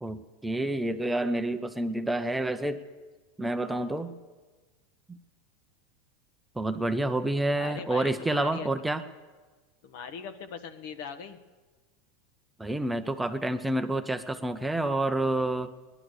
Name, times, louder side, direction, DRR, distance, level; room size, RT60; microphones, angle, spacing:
voice 1, 0.0-2.9 3.4-4.2 5.1-5.2 6.6-9.0 12.6-15.7, right 1 dB, 5° right, 8 dB, 0.6 m, -29 dB
voice 2, 7.6-8.7 9.8-11.4, left 7 dB, 60° left, 8 dB, 1.1 m, -40 dB
17.5 x 11.0 x 6.6 m, 1.3 s
supercardioid pair, 150°, 0 cm